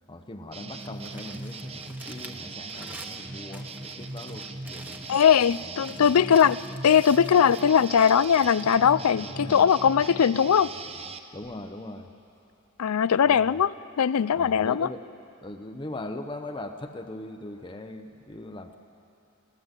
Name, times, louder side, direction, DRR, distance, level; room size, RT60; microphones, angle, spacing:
voice 1, 0.1-5.1 5.6-6.1 9.2-9.6 11.3-12.1 13.3-13.6 14.3-15.1 15.4-18.8, left 1 dB, 20° left, 6 dB, 0.7 m, -40 dB
sound 1, 0.5-11.2, right 3 dB, 25° right, 0.8 m, -39 dB
Crumpling crinkling, 0.8-9.8, right 1 dB, 10° right, 1.1 m, -49 dB
voice 2, 5.1-10.7 12.8-13.7 14.0-14.9, left 7 dB, 90° left, 18 dB, 0.4 m, -20 dB
26.0 x 15.5 x 8.1 m, 2.9 s
head